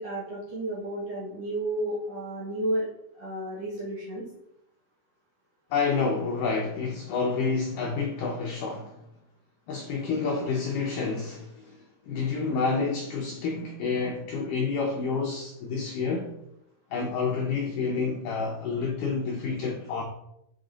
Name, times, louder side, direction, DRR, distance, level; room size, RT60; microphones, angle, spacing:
voice 1, 0.0-2.8 3.1-4.2, right 1 dB, 55° right, 2.1 m, -32 dB
voice 2, 5.7-9.0 9.7-11.8 12.1-16.3 16.9-20.0, left 4 dB, 80° left, 1.9 m, -29 dB
8.0 x 4.1 x 3.8 m
omnidirectional pair, 4.5 m